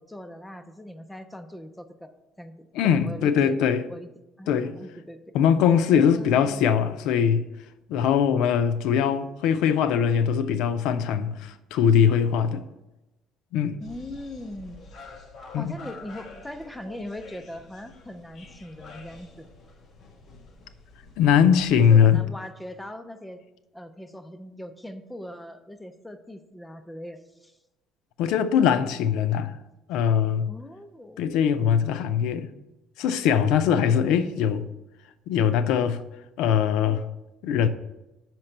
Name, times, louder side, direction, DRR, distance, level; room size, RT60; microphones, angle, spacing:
voice 1, 0.0-3.6 3.9-4.1 4.4-5.3 5.9-6.7 13.8-14.8 15.5-19.5 21.8-23.4 23.7-27.6 30.5-31.2, left 1 dB, 5° left, 0.4 m, -40 dB
voice 2, 2.7-3.8 4.5-4.7 5.3-7.5 7.9-12.6 13.5-13.8 15.5-15.7 21.2-22.2 28.2-29.6 29.9-30.5 31.2-32.5 33.0-34.7 35.3-36.0 36.4-37.0 37.4-37.7, left 8 dB, 75° left, 0.4 m, -21 dB
sound 1, 13.8-22.2, left 3 dB, 35° left, 0.9 m, -48 dB
5.9 x 4.4 x 6.4 m
cardioid pair, 160°, 0 cm